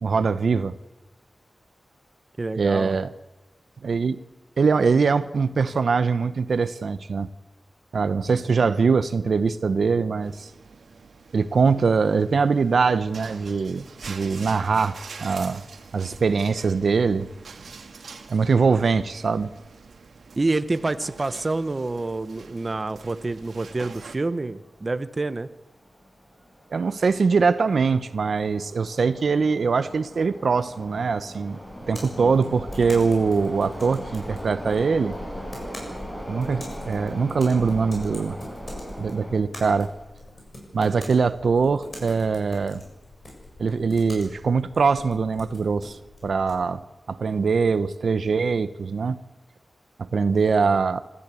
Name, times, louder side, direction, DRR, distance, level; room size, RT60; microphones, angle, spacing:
voice 1, 0.0-0.8 2.6-3.1 3.8-4.2 4.6-7.3 7.9-10.5 11.3-15.6 15.9-17.3 18.3-19.5 26.7-31.6 31.9-35.2 36.3-38.4 39.0-39.9 40.7-42.8 43.6-46.8 47.1-49.2 50.0-51.0, right 5 dB, 70° right, 13 dB, 0.8 m, -22 dB
voice 2, 2.4-2.9 20.4-25.5 32.2-32.3, right 2 dB, 30° right, 12 dB, 0.9 m, -27 dB
sound 1, 10.2-24.2, right 5 dB, 85° right, 1.9 m, -45 dB
sound 2, 22.5-22.6 22.8-22.9 23.7-23.9 24.2-24.3 24.9-25.3 25.7-39.4, equal, 5° left, 7.2 m, -39 dB
sound 3, 31.6-46.6, left 1 dB, 35° left, 7.7 m, -44 dB
25.5 x 14.0 x 8.4 m, 1.2 s
wide cardioid pair, 120°, 0 cm